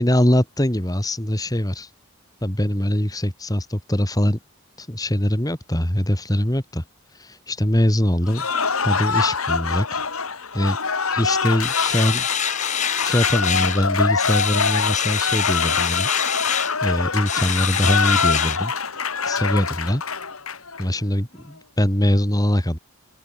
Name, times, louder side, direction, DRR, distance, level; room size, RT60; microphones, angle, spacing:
voice 1, 0.0-1.9 2.4-4.4 4.8-6.8 7.2-8.5 8.8-10.0 10.5-10.8 11.1-12.2 13.0-16.1 16.4-18.7 19.2-20.0 20.8-22.8, equal, 15° left, 2.6 m, -22 dB
Cheering / Applause, 8.3-20.9, left 5 dB, 80° left, 4.4 m, -24 dB
sound 1, 11.6-13.8 14.2-16.8 17.3-18.6, left 8 dB, 35° left, 2.0 m, -25 dB
head